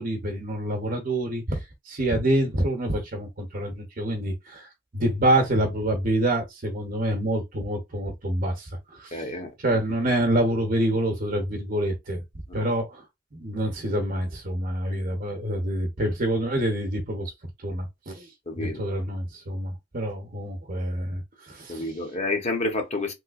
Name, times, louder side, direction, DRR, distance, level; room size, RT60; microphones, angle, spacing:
voice 1, 0.0-9.3 9.6-12.2 12.5-13.0 13.3-17.3 17.6-18.3 18.6-22.1, right 1 dB, 45° right, 0.8 m, -27 dB
voice 2, 9.1-9.8 12.5-12.7 14.9-15.0 18.5-18.9 21.7-23.1, left 2 dB, 35° left, 0.9 m, -30 dB
3.2 x 3.1 x 2.4 m
head